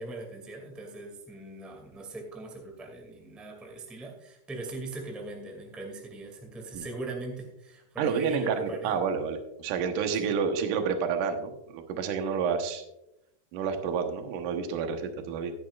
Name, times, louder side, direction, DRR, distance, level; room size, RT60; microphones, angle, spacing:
voice 1, 0.0-8.9 10.2-10.3, right 2 dB, ahead, 1 dB, 1.4 m, -40 dB
voice 2, 8.0-12.8 13.5-15.5, right 6 dB, 70° right, 5 dB, 2.6 m, -29 dB
15.0 x 10.5 x 2.4 m, 0.86 s
omnidirectional pair, 4.1 m